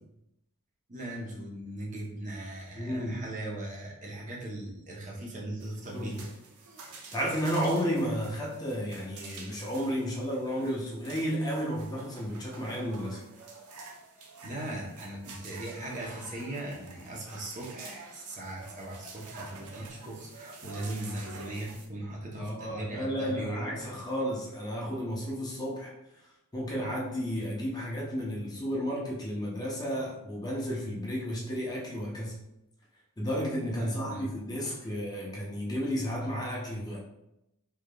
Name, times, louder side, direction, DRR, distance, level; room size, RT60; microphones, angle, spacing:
voice 1, 0.9-6.3 6.7-6.8 14.4-23.7 23.9-24.0 33.8-34.3 34.6-34.8, right 1 dB, 35° right, -3 dB, 0.7 m, -39 dB
voice 2, 2.8-3.2 5.9-6.1 7.1-13.2 22.4-25.9 26.5-32.3 33.2-37.0, equal, 15° left, -3 dB, 0.6 m, -32 dB
sound 1, 5.6-21.9, right 3 dB, 80° right, 0.6 m, -49 dB
3.7 x 3.4 x 2.2 m, 0.87 s
head